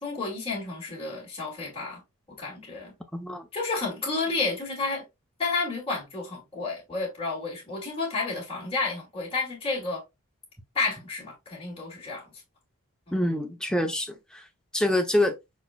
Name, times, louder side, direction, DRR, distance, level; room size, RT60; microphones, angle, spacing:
voice 1, 0.0-2.0 2.3-2.9 3.5-5.0 5.4-10.0 10.7-12.3 13.1-13.2, left 3 dB, 25° left, 2.2 m, -31 dB
voice 2, 3.1-3.4 13.1-14.4 14.7-15.3, left 1 dB, 5° left, 0.7 m, -26 dB
4.7 x 4.3 x 2.3 m
head